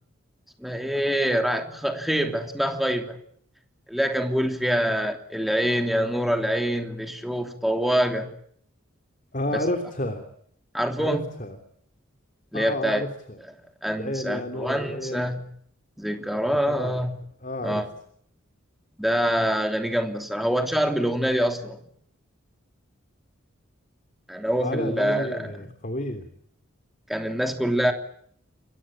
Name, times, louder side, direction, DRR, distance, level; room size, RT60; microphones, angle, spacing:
voice 1, 0.6-3.2 3.9-8.3 9.5-9.6 10.7-11.2 12.5-13.0 13.8-15.5 16.0-17.2 17.6-17.9 19.0-21.8 24.3-25.7 27.1-27.9, equal, ahead, 5 dB, 3.1 m, -25 dB
voice 2, 9.3-10.2 11.0-11.6 12.5-13.4 14.0-15.3 16.7-17.0 17.4-17.8 24.6-26.3, left 1 dB, 40° left, 7 dB, 3.1 m, -31 dB
29.5 x 22.5 x 9.0 m, 0.66 s
head